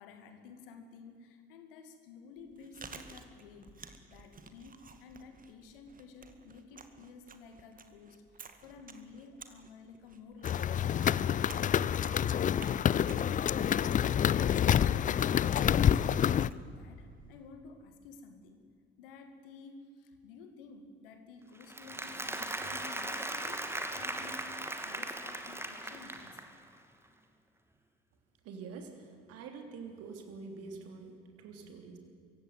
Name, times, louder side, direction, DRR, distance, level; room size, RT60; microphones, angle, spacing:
voice 1, 0.0-13.1 14.3-18.6 19.0-24.6 24.8-26.5, left 4 dB, 70° left, 7 dB, 2.3 m, -53 dB
Chewing mastication, 2.4-17.5, right 5 dB, 30° right, 2.0 m, -54 dB
sound 1, 10.4-16.5, left 9 dB, 25° left, 0.5 m, -27 dB
Applause, 21.6-26.6, right 1 dB, 10° right, 2.5 m, -38 dB
voice 2, 28.4-32.0, right 4 dB, 55° right, 5 dB, 3.2 m, -46 dB
24.5 x 16.0 x 9.6 m, 2.3 s
figure-of-eight pair, 55°, 29 cm